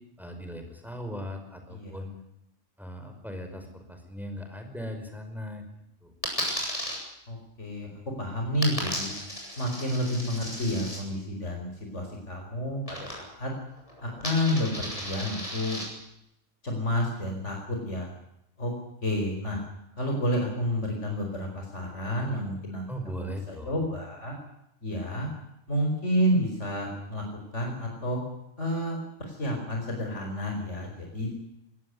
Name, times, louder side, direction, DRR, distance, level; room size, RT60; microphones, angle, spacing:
voice 1, 0.2-2.1 2.8-5.7 6.0-6.1 22.9-23.8, equal, ahead, 5 dB, 5.1 m, -38 dB
Coin (dropping), 6.2-7.0 8.6-11.0 12.9-13.5 13.8-15.8, equal, 25° left, 8.0 m, -35 dB
voice 2, 7.3-7.9 8.2-9.1 9.6-13.5 14.0-15.8 16.6-18.1 18.6-18.7 19.0-19.6 20.0-22.9 23.1-24.3 24.8-25.3 25.7-27.2 27.5-28.2 28.6-31.3, equal, 70° left, 1 dB, 5.1 m, -30 dB
22.5 x 17.5 x 9.7 m, 0.81 s
omnidirectional pair, 1.3 m